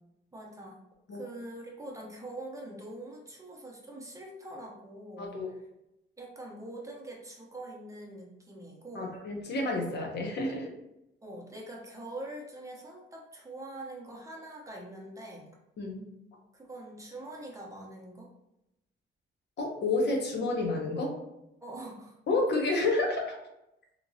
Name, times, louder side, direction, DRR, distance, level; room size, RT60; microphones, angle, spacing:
voice 1, 0.3-0.8 1.1-5.6 6.2-9.1 11.2-15.5 16.5-18.3 21.6-22.2, right 1 dB, 15° right, -2 dB, 0.6 m, -44 dB
voice 2, 5.2-5.5 8.9-10.7 15.8-16.0 19.6-21.1 22.3-23.4, left 2 dB, 55° left, 1 dB, 0.7 m, -30 dB
2.8 x 2.8 x 2.6 m, 0.88 s
cardioid pair, 150°, 21 cm